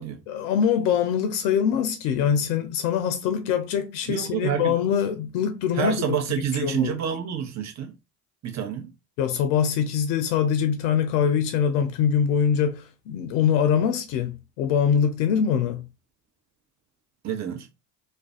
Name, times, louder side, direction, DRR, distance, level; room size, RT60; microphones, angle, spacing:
voice 1, 0.3-6.0 6.6-6.9 9.2-15.9, left 8 dB, 80° left, 0.5 m, -23 dB
voice 2, 4.1-4.8 5.7-7.9 8.4-8.9 17.2-17.7, right 8 dB, 35° right, 0.7 m, -28 dB
2.4 x 2.1 x 2.4 m
hypercardioid pair, 55°, 47 cm